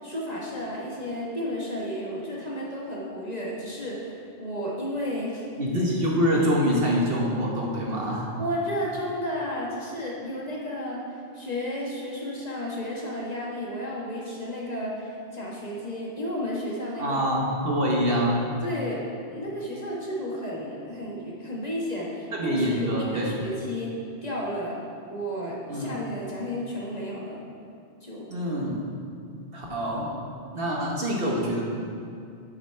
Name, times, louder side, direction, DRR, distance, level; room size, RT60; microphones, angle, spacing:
voice 1, 0.0-5.5 8.4-11.0 11.3-17.2 18.6-19.0 19.3-23.9 24.2-24.7 25.0-27.4 28.0-28.3, equal, 35° left, -4 dB, 1.4 m, -32 dB
voice 2, 5.6-8.3 17.0-18.4 22.3-23.4 25.7-25.9 28.3-28.8 29.5-30.1 30.5-31.6, equal, 55° right, -3 dB, 1.4 m, -25 dB
8.9 x 8.1 x 3.3 m, 2.4 s
omnidirectional pair, 1.2 m